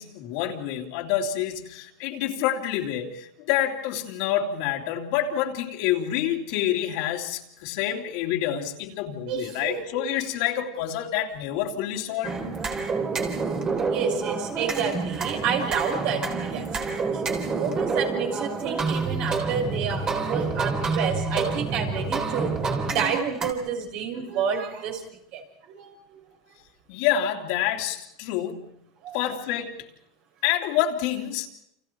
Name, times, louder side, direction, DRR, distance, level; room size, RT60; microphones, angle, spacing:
voice 1, 0.0-12.4 26.9-28.7 29.1-29.8 30.4-31.5, left 11 dB, 60° left, 2 dB, 3.1 m, -27 dB
voice 2, 9.2-10.1 12.9-13.1 13.9-17.2 17.5-22.5 22.8-25.0 25.3-26.2 29.0-29.2, right 6 dB, 50° right, 2 dB, 6.7 m, -30 dB
sound 1, 12.2-23.5, right 4 dB, 25° right, 3.7 m, -28 dB
30.0 x 28.0 x 4.7 m, 0.77 s
supercardioid pair, 140°, 3 cm